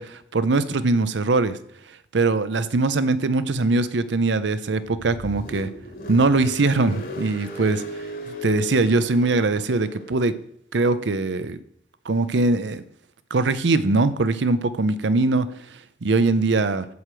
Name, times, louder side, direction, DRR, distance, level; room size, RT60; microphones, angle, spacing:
voice 1, 0.0-1.6 2.1-5.7 6.1-7.8 8.4-10.3 10.7-11.6 12.1-12.8 13.3-15.5 16.0-16.9, right 3 dB, 85° right, 14 dB, 0.6 m, -21 dB
Car, 4.8-10.3, equal, 50° left, 1.3 m, -36 dB
8.0 x 7.5 x 4.9 m, 0.73 s
head